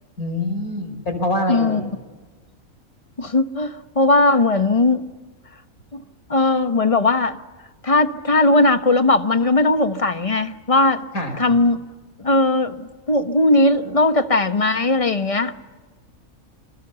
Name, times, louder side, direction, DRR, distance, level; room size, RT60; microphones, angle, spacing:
voice 1, 0.2-1.8 11.1-11.3, left 1 dB, 80° left, 5.3 m, -24 dB
voice 2, 1.5-1.9 3.2-5.0 5.9-6.0 6.3-7.4 7.8-11.1 11.4-11.8 12.2-15.5, left 2 dB, 25° left, 1.0 m, -18 dB
28.0 x 24.0 x 6.9 m
omnidirectional pair, 1.5 m